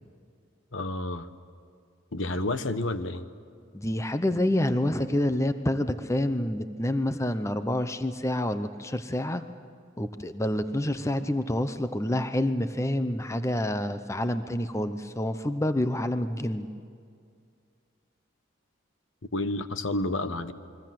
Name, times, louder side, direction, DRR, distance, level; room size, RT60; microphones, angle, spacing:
voice 1, 0.7-1.3 2.1-3.3 19.3-20.5, left 2 dB, 65° left, 11 dB, 1.1 m, -30 dB
voice 2, 3.7-9.4 10.0-16.7, left 1 dB, 15° left, 10 dB, 0.7 m, -28 dB
29.0 x 22.0 x 7.7 m, 2.2 s
head